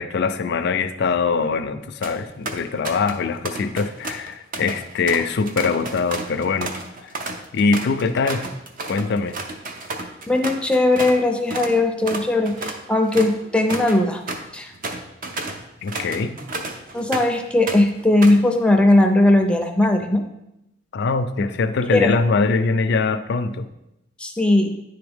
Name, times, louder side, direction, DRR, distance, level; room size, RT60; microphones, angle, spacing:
voice 1, 0.0-6.7 7.5-8.4 8.9-9.4 15.8-16.4 20.9-23.7, left 4 dB, 60° left, 10 dB, 0.4 m, -22 dB
sound 1, 1.8-2.2 2.5-3.2 3.4-11.2 11.5-11.7 12.0-17.4 17.7-18.5, right 2 dB, 45° right, 0.6 m, -32 dB
voice 2, 10.3-14.2 14.5-14.7 16.9-20.2 21.9-22.1 24.2-24.8, left 2 dB, 5° left, 4 dB, 0.5 m, -18 dB
9.8 x 3.5 x 3.5 m, 0.89 s
head